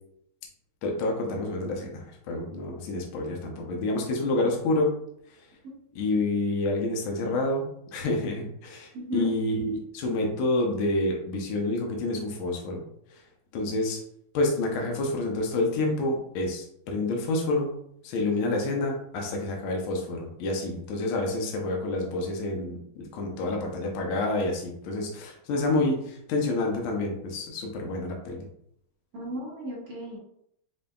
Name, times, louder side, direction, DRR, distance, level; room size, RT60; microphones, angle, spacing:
voice 1, 0.8-4.9 5.9-7.6 7.9-12.8 13.5-14.0 14.3-17.8 18.0-28.5, left 2 dB, 75° left, 0 dB, 1.5 m, -28 dB
voice 2, 8.9-9.3 29.1-30.2, equal, 50° right, -3 dB, 1.4 m, -35 dB
5.1 x 2.7 x 2.2 m, 0.71 s
omnidirectional pair, 2.4 m